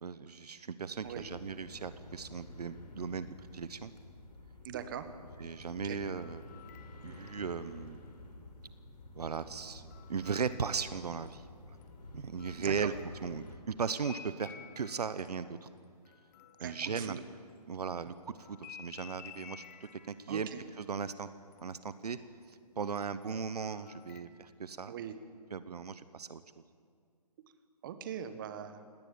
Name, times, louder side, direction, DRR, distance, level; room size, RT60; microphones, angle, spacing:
voice 1, 0.0-3.3 3.5-3.9 5.4-6.4 7.0-8.0 9.1-9.8 10.1-11.5 12.1-12.9 13.2-15.7 16.6-17.2 17.7-20.5 20.8-21.3 21.6-22.2 22.5-24.9 25.5-26.4, right 6 dB, 70° right, 13 dB, 1.0 m, -37 dB
sound 1, 1.0-13.6, left 2 dB, 80° left, 4.3 m, -51 dB
voice 2, 4.6-5.1 5.8-6.0 12.6-12.9 16.6-17.2 20.3-20.6 24.9-25.1 27.8-28.8, right 9 dB, 30° right, 10 dB, 1.4 m, -41 dB
sound 2, 5.5-8.1 9.3-11.4 11.8-17.7 18.4-22.5 22.9-24.2, left 8 dB, 25° left, 1.0 m, -55 dB
20.0 x 18.0 x 8.6 m, 2.2 s
hypercardioid pair, 155°, 21 cm